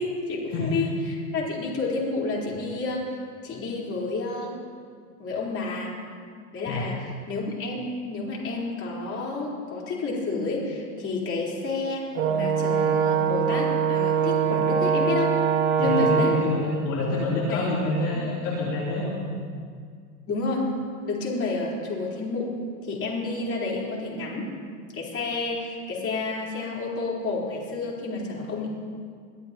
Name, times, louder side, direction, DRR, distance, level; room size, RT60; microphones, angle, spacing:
voice 1, 0.0-3.2 3.4-4.6 5.2-5.9 6.5-15.3 15.8-16.3 17.5-17.7 18.1-18.2 20.3-20.7 21.0-22.5 22.8-24.5 24.9-28.7, left 3 dB, 30° left, -4 dB, 4.4 m, -30 dB
Brass instrument, 12.2-16.6, right 7 dB, 65° right, 1.9 m, -23 dB
voice 2, 15.8-19.2, left 2 dB, 45° left, -6 dB, 3.7 m, -27 dB
23.0 x 13.0 x 3.1 m, 2.1 s
hypercardioid pair, 110°, 43 cm